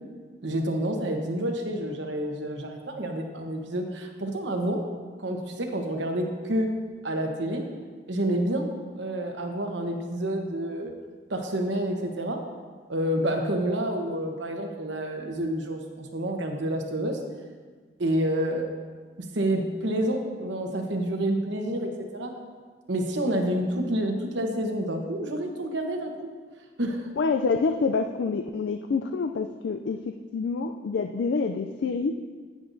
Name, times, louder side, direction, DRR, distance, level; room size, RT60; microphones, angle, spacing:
voice 1, 0.4-4.8 5.2-6.7 7.0-7.6 8.1-8.7 9.0-10.9 11.3-12.4 12.9-17.2 18.0-18.7 19.3-22.3 22.9-26.3 26.8-27.1, right 1 dB, 70° right, 3 dB, 1.1 m, -28 dB
voice 2, 27.2-32.1, left 4 dB, 65° left, 6 dB, 0.3 m, -27 dB
10.0 x 9.7 x 2.7 m, 1.5 s
head